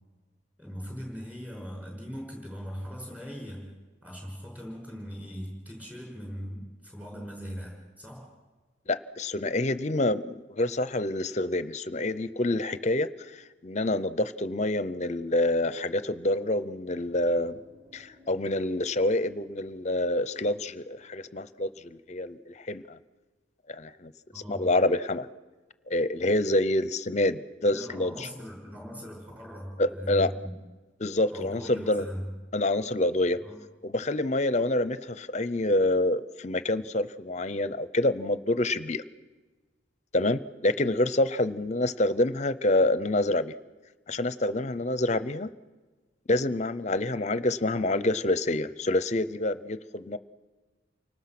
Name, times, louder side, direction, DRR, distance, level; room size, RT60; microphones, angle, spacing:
voice 1, 0.6-3.7 4.0-8.3 24.3-24.7 27.6-30.5 31.3-32.3 33.3-33.5, equal, 10° right, 0 dB, 5.9 m, -40 dB
voice 2, 8.9-17.6 17.9-23.0 23.7-25.3 25.9-28.3 29.8-30.3 31.0-32.1 32.5-33.4 33.8-39.0 40.1-43.5 44.1-45.5 46.3-50.2, left 1 dB, 40° left, 15 dB, 0.7 m, -27 dB
sound 1, 17.0-22.0, left 1 dB, 50° right, 6.1 m, -58 dB
29.0 x 19.0 x 6.0 m, 1.3 s
head